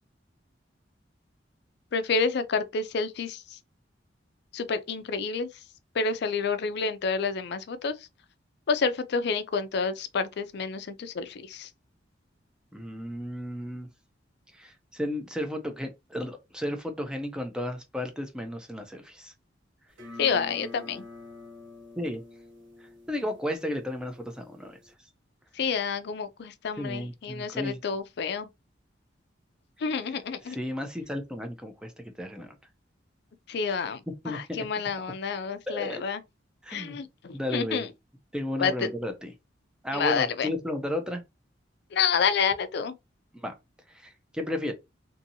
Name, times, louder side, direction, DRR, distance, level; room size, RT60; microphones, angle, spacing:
voice 1, 1.9-3.6 4.5-5.5 5.9-7.9 8.7-11.7 20.2-21.0 25.5-28.5 29.8-30.6 33.5-34.0 34.3-36.2 36.7-37.9 38.6-38.9 39.9-40.5 41.9-42.9, left 5 dB, 60° left, 0.4 m, -29 dB
voice 2, 12.7-13.9 14.5-19.3 22.0-22.2 23.1-24.8 26.8-27.8 30.5-32.5 33.7-33.8 34.2-34.4 35.7-36.0 36.6-37.0 37.3-37.8 38.3-39.3 39.8-41.2 43.3-43.5 43.9-44.7, left 1 dB, 5° right, 0.4 m, -33 dB
sound 1, 19.9-24.9, left 2 dB, 85° right, 0.9 m, -47 dB
2.6 x 2.6 x 2.7 m
head